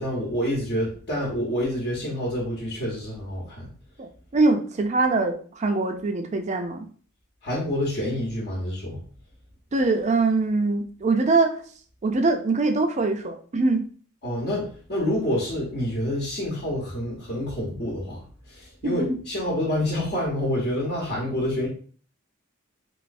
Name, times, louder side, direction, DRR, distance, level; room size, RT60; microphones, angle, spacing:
voice 1, 0.0-3.7 7.4-9.0 14.2-21.7, left 1 dB, 50° left, -4 dB, 0.9 m, -27 dB
voice 2, 4.0-6.9 9.7-11.5 12.0-13.8 18.8-19.2, right 3 dB, 35° right, 5 dB, 0.4 m, -23 dB
3.2 x 3.1 x 2.5 m, 0.44 s
head